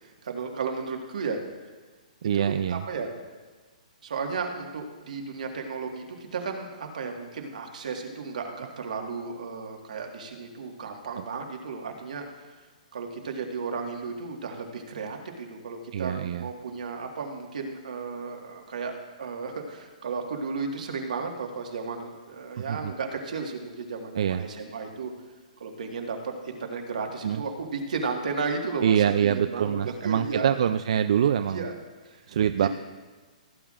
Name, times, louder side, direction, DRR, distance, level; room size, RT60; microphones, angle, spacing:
voice 1, 0.0-1.4 2.3-3.1 4.0-12.3 12.9-18.9 19.2-25.1 25.6-30.7 31.5-31.7 32.1-32.7, right 4 dB, 75° right, 2 dB, 1.7 m, -34 dB
voice 2, 2.2-2.8 11.2-11.3 15.9-16.5 22.7-22.9 24.2-24.4 27.2-27.4 28.8-31.7 32.3-32.7, right 9 dB, 50° right, 10 dB, 0.3 m, -25 dB
16.5 x 9.1 x 2.5 m, 1.4 s
hypercardioid pair, 170°, 4 cm